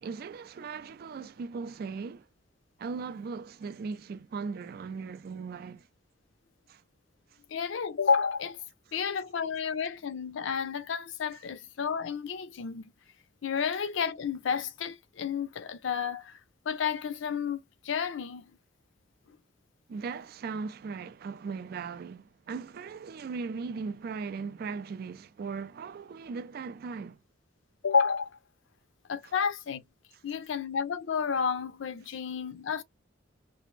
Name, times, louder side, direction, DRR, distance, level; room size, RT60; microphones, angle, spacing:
voice 1, 0.0-2.3 2.8-5.9 6.7-6.8 19.9-27.2, right 5 dB, 50° right, 0.3 m, -38 dB
voice 2, 7.5-8.6 8.9-12.8 13.4-16.4 16.7-18.4 27.8-28.3 29.1-29.8 30.2-32.8, left 6 dB, 70° left, 0.4 m, -31 dB
2.5 x 2.0 x 3.0 m
head